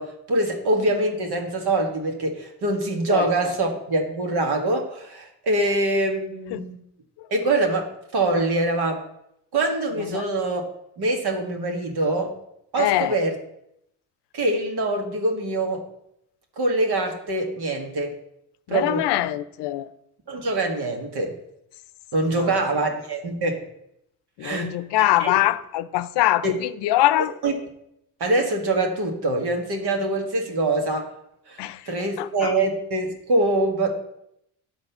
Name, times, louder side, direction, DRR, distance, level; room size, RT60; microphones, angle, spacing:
voice 1, 0.0-6.8 7.3-9.0 9.5-10.6 11.0-12.3 12.7-13.4 14.3-15.9 16.6-18.1 18.7-19.1 20.3-21.4 22.1-23.7 24.4-24.7 25.0-25.5 26.4-26.5 27.4-27.5 28.2-31.1 31.5-31.6 31.9-33.9, right 2 dB, 65° right, 1.9 m, -24 dB
voice 2, 12.8-13.1 18.7-19.9 22.4-22.5 24.4-27.3 31.6-31.8 32.2-32.5, left 15 dB, 80° left, 0.6 m, -23 dB
10.5 x 4.2 x 6.8 m
supercardioid pair, 60°, 41 cm